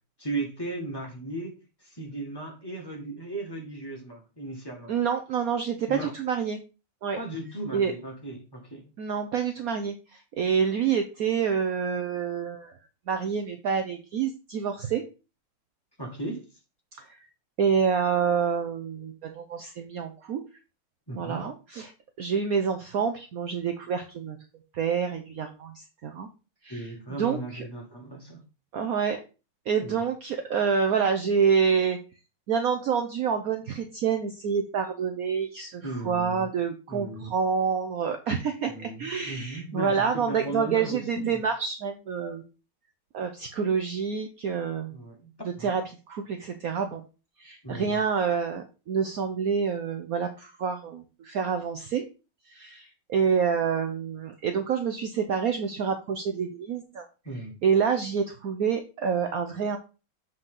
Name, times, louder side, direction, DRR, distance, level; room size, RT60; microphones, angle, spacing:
voice 1, 0.2-4.9 5.9-6.1 7.2-8.9 16.0-16.5 21.1-21.5 26.6-28.4 29.8-30.0 35.8-36.5 36.9-37.3 38.7-41.4 44.9-45.3 45.6-45.7 47.6-48.0 57.2-57.6, right 2 dB, 10° left, -1 dB, 1.6 m, -36 dB
voice 2, 4.9-6.6 7.0-7.2 7.7-7.9 9.0-12.7 13.1-15.0 17.0-17.3 17.6-20.4 21.1-21.9 22.2-24.4 24.7-26.3 26.6-27.6 28.7-29.2 29.7-32.0 32.5-42.4 43.1-45.0 45.6-47.0 47.4-52.1 52.5-57.1 57.6-59.8, right 6 dB, 70° right, 6 dB, 0.8 m, -27 dB
7.7 x 4.5 x 3.7 m, 0.32 s
omnidirectional pair, 2.4 m